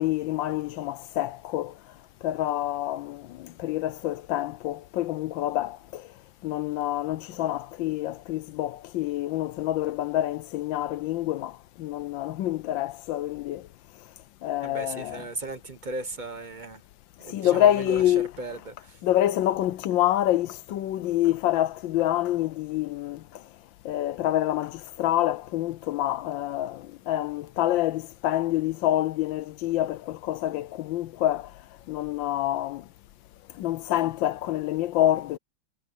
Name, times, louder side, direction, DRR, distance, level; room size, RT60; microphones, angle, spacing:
voice 1, 0.0-1.7 2.2-6.0 6.4-11.5 11.8-13.6 14.4-15.2 17.3-18.3 19.0-23.2 23.8-31.5 31.9-32.8 33.6-35.4, left 13 dB, 75° left, 1.3 m, -27 dB
voice 2, 14.6-16.8 17.2-19.0, right 2 dB, 30° right, 1.0 m, -37 dB
omnidirectional pair, 2.2 m